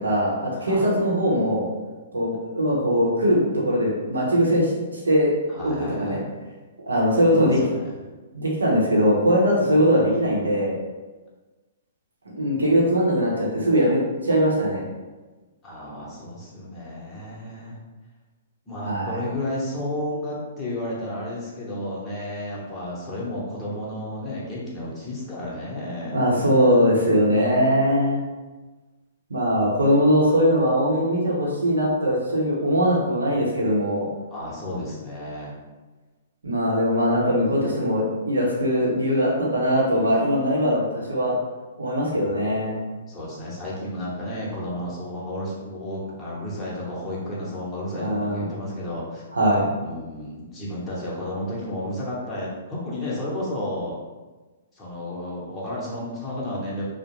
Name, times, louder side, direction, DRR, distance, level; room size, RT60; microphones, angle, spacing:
voice 1, 0.0-1.7 2.1-5.3 5.6-6.2 6.9-7.6 8.3-10.7 12.3-14.8 18.8-19.2 26.1-28.2 29.3-34.1 36.4-41.3 41.8-42.8 48.0-48.5 49.3-49.7, equal, 90° right, -4 dB, 0.8 m, -21 dB
voice 2, 0.5-0.9 5.5-6.3 7.4-7.9 15.6-17.8 18.7-26.2 34.3-35.6 42.1-42.6 43.1-49.2 49.8-53.9 54.7-56.8, left 1 dB, 15° left, -8 dB, 0.8 m, -32 dB
2.4 x 2.1 x 2.9 m, 1.2 s
hypercardioid pair, 130°, 0 cm